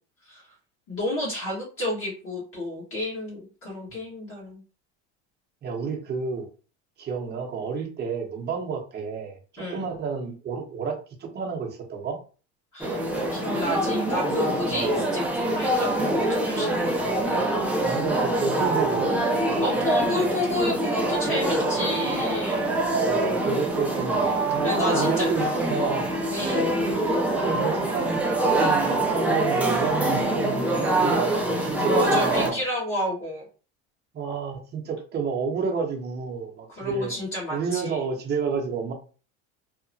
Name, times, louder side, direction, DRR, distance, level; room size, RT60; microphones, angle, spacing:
voice 1, 0.9-4.6 9.6-9.8 12.7-13.0 13.3-17.0 19.6-22.8 24.6-25.3 26.3-26.8 31.9-33.4 36.8-38.0, left 1 dB, 40° left, -6 dB, 1.3 m, -30 dB
voice 2, 5.6-6.5 7.0-12.2 14.7-15.0 17.8-19.1 22.9-24.4 24.8-26.2 27.3-32.6 34.1-37.1 37.5-38.9, right 5 dB, 30° right, 1 dB, 0.8 m, -30 dB
sound 1, 12.8-32.5, right 1 dB, 5° right, 0.4 m, -24 dB
2.8 x 2.1 x 2.6 m, 0.37 s
supercardioid pair, 115°, 34 cm